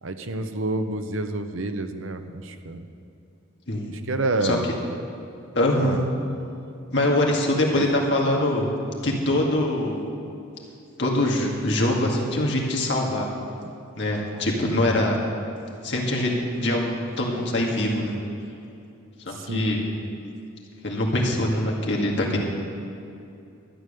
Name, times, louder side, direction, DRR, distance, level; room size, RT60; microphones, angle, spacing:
voice 1, 0.0-2.8 4.1-4.7 5.8-6.0 7.8-7.9 13.6-13.7 14.6-15.2 19.3-19.7, right 2 dB, 85° right, 8 dB, 0.8 m, -29 dB
voice 2, 5.5-6.0 6.9-8.7 9.0-10.0 11.0-13.3 14.0-15.2 15.8-16.9 17.2-18.1 19.3-19.8 20.8-22.4, left 1 dB, 60° left, -1 dB, 2.1 m, -23 dB
12.5 x 9.3 x 6.7 m, 2.6 s
head